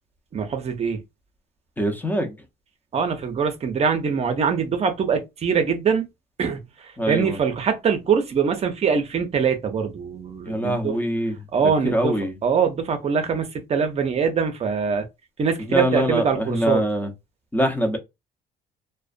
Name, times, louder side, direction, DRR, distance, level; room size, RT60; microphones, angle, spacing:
voice 1, 0.3-1.0 2.9-6.1 6.4-6.6 7.1-11.0 11.5-12.2 12.4-15.0 15.4-16.8, right 6 dB, 40° right, 0.6 m, -23 dB
voice 2, 1.8-2.3 7.0-7.4 10.5-11.4 11.6-12.4 15.7-17.1 17.5-18.0, equal, 10° left, 0.7 m, -23 dB
2.4 x 2.2 x 2.4 m
cardioid pair, 110°, 17 cm